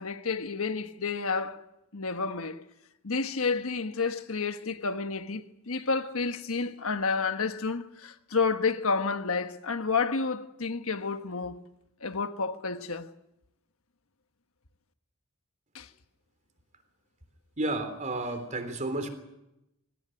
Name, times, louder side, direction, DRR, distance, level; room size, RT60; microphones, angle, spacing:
voice 1, 0.0-1.6 1.9-2.6 3.0-11.6 12.0-13.1 15.7-15.9, left 4 dB, 70° left, 1.3 m, -30 dB
voice 2, 17.6-19.1, right 2 dB, 35° right, 3.6 m, -31 dB
25.0 x 18.5 x 9.2 m
head